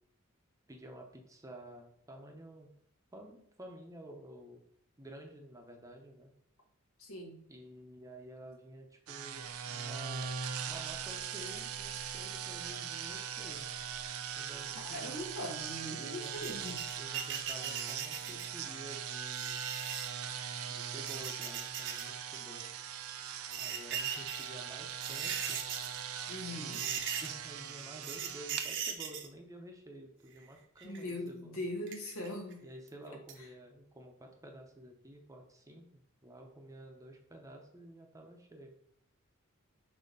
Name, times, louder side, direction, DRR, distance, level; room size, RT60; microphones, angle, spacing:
voice 1, 0.7-2.7 3.1-4.6 5.0-6.3 7.5-10.3 10.7-13.7 14.4-15.2 16.0-19.6 20.7-22.7 23.6-25.6 26.5-31.6 32.6-38.7, right 1 dB, 15° right, 3 dB, 0.8 m, -51 dB
voice 2, 7.0-7.4 14.7-16.8 26.3-26.8 30.8-32.6, left 1 dB, 75° left, 2 dB, 1.3 m, -41 dB
sound 1, 9.1-28.7, right 8 dB, 80° right, 0.5 m, -41 dB
sound 2, 16.4-18.6 19.3-20.1 20.8-22.0 22.3-22.4 23.3-24.5 24.9-26.0 26.3-26.5 26.7-27.5 28.0-29.3 30.3-31.1 31.9-32.5 32.9-33.0 33.3-33.4, right 8 dB, 60° right, 0.8 m, -39 dB
6.5 x 2.8 x 5.3 m, 0.72 s
head